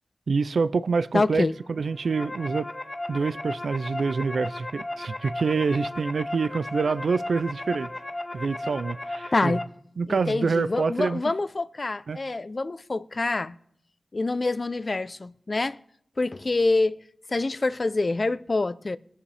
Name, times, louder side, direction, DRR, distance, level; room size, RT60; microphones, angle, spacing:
voice 1, 0.3-2.7 3.1-7.9 8.3-9.6 10.0-11.2 12.1-12.2, right 4 dB, 80° right, 0.4 m, -26 dB
voice 2, 1.1-1.6 9.3-9.6 10.1-13.5 14.1-15.8 16.2-17.0 17.3-19.0, left 3 dB, 50° left, 0.5 m, -26 dB
sound 1, 1.8-9.6, left 2 dB, 30° left, 0.9 m, -35 dB
21.0 x 7.1 x 3.4 m
cardioid pair, 45°, 0 cm